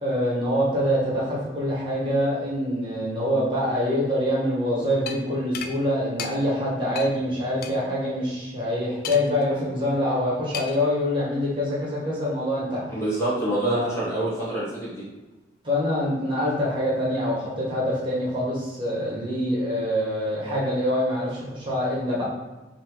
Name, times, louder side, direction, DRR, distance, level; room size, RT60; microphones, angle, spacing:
voice 1, 0.0-12.8 13.7-13.9 15.6-22.2, equal, 25° right, -7 dB, 1.4 m, -25 dB
sound 1, 5.1-5.2 5.5-5.7 6.2-6.3 7.0-7.1 7.6-7.7 9.0-9.4 10.5-10.9, left 7 dB, 50° left, 0.3 m, -33 dB
voice 2, 12.9-15.0, right 1 dB, 15° left, -9 dB, 1.3 m, -26 dB
3.6 x 3.0 x 4.5 m, 1.1 s
head